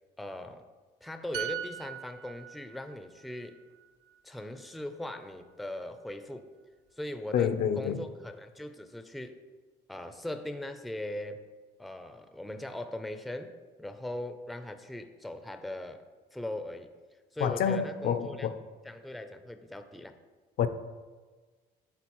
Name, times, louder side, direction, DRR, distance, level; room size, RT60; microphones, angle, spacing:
voice 1, 0.2-0.7 1.0-3.6 4.2-6.5 7.0-9.4 9.9-11.4 11.8-16.0 16.3-16.9 17.3-18.5 18.8-20.1, left 1 dB, ahead, 0.4 m, -40 dB
sound 1, 1.3-4.9 5.3-5.5, right 11 dB, 65° right, 0.4 m, -42 dB
voice 2, 7.3-8.1 17.4-18.6 20.6-20.7, left 8 dB, 65° left, 0.5 m, -28 dB
11.5 x 3.8 x 3.0 m
cardioid pair, 110°, 17 cm